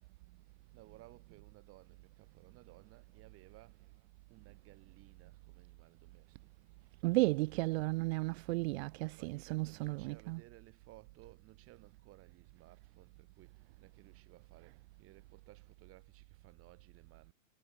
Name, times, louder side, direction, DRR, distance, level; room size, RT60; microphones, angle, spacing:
voice 1, 0.7-3.8 4.3-6.7 9.2-17.3, right 17 dB, 35° right, 3.5 m, -60 dB
voice 2, 7.0-10.4, right 22 dB, 50° right, 0.7 m, -33 dB
supercardioid pair, 140°, 40 cm